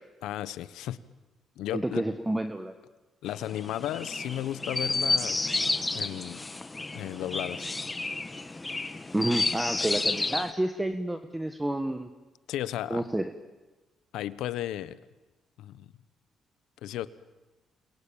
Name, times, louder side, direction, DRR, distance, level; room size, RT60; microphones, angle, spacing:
voice 1, 0.2-1.0 1.6-2.0 3.2-5.5 5.9-6.4 6.9-7.7 12.5-13.0 14.1-15.0 15.6-15.9 16.8-17.1, left 12 dB, 85° left, 16 dB, 1.0 m, -34 dB
voice 2, 1.7-2.7 9.1-12.1 12.9-13.2, right 1 dB, 10° right, 8 dB, 1.4 m, -29 dB
Chirp tweet, 3.3-10.5, left 2 dB, 20° left, 1.5 m, -31 dB
28.0 x 22.5 x 8.9 m, 1.1 s
cardioid pair, 90°, 0 cm